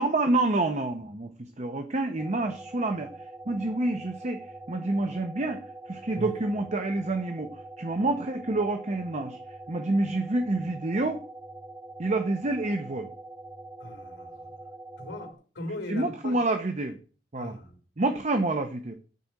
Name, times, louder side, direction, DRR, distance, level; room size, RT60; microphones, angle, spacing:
voice 1, 0.0-3.1 3.5-4.4 4.7-9.4 9.7-11.2 12.0-13.1 15.9-17.0 17.3-17.6 18.0-18.9, right 2 dB, 40° right, 0.8 m, -28 dB
sound 1, 2.2-15.3, right 2 dB, 5° right, 0.4 m, -44 dB
voice 2, 13.8-14.4 15.0-16.4 17.3-17.8, left 1 dB, 80° left, 3.0 m, -39 dB
9.4 x 4.2 x 7.5 m
head